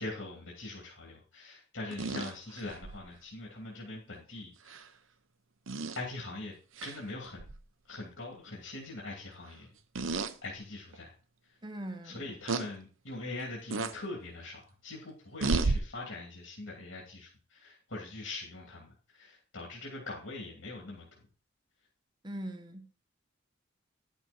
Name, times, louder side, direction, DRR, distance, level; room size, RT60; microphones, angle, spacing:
voice 1, 0.0-4.8 5.9-6.5 6.8-7.4 7.9-9.7 10.4-11.1 11.4-11.6 12.0-21.3, left 2 dB, 75° left, 2.7 m, -42 dB
sound 1, 1.9-3.0 4.7-4.8 5.7-6.0 6.8-7.0 7.4-7.6 9.9-10.3 10.9-11.0 12.5-12.7 13.7-13.9 15.4-15.8, right 3 dB, 80° right, 0.9 m, -32 dB
voice 2, 11.6-12.4 22.2-22.9, right 1 dB, 20° right, 1.2 m, -41 dB
11.0 x 6.2 x 4.4 m
head